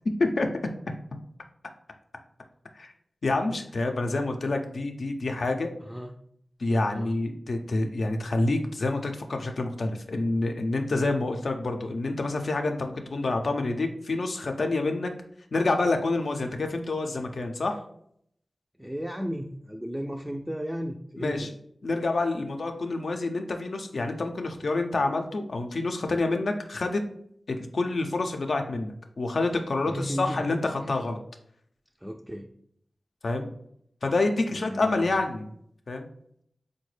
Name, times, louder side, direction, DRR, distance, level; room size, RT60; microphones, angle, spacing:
voice 1, 3.2-5.7 6.6-15.1 15.5-17.8 21.2-21.5 21.8-27.0 27.5-31.2 33.2-33.5 34.0-35.5 35.9-36.1, left 2 dB, 75° left, 5 dB, 0.4 m, -27 dB
voice 2, 5.8-6.1 6.9-7.1 18.8-21.5 29.8-30.9 32.0-32.5 34.5-35.3, equal, 5° right, 1 dB, 0.3 m, -35 dB
3.8 x 2.1 x 3.1 m, 0.69 s
cardioid pair, 45°, 0 cm